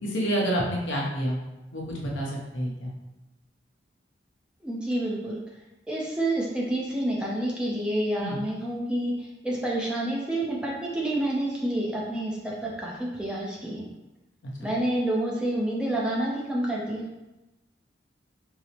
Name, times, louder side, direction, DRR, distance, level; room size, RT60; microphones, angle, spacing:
voice 1, 0.0-1.4 1.7-2.9 8.2-8.4 14.6-14.7, equal, 85° left, -3 dB, 0.8 m, -28 dB
voice 2, 4.6-5.4 5.9-13.8 14.6-17.1, right 1 dB, 5° right, -4 dB, 0.5 m, -28 dB
4.7 x 2.0 x 2.8 m, 1.0 s
head